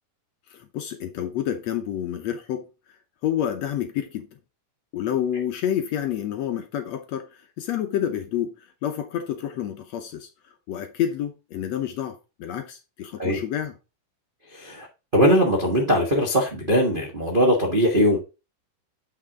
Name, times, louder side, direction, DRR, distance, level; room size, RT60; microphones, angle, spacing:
voice 1, 0.5-2.7 3.2-4.3 4.9-10.3 10.7-13.7, left 10 dB, 70° left, 1.7 m, -29 dB
voice 2, 14.5-14.9 15.1-18.2, equal, 65° right, 0.5 m, -20 dB
7.5 x 6.0 x 3.6 m
omnidirectional pair, 3.8 m